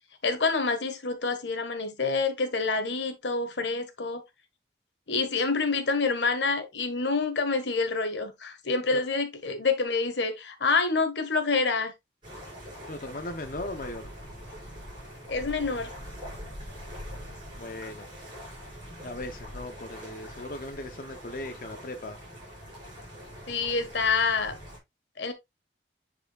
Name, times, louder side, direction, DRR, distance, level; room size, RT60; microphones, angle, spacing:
voice 1, 0.2-4.2 5.1-11.9 15.3-15.9 23.5-24.5 25.2-25.3, left 4 dB, 85° left, 1.5 m, -27 dB
sound 1, 12.2-24.8, equal, 25° right, 5.4 m, -43 dB
voice 2, 12.9-14.1 17.6-18.1 19.0-22.2, left 1 dB, 50° left, 0.7 m, -38 dB
9.8 x 4.8 x 2.3 m
head